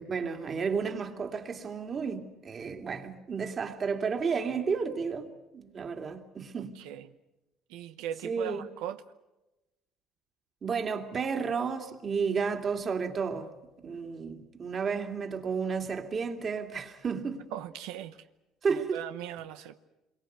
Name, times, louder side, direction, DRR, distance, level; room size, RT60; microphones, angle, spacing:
voice 1, 0.0-6.8 8.2-8.7 10.6-13.5 13.8-17.5 18.6-19.0, right 5 dB, 35° right, 2.6 m, -32 dB
voice 2, 6.6-7.1 7.7-9.0 17.5-18.2 18.7-19.7, right 11 dB, 90° right, 0.9 m, -39 dB
27.0 x 23.0 x 8.1 m
cardioid pair, 120°, 0 cm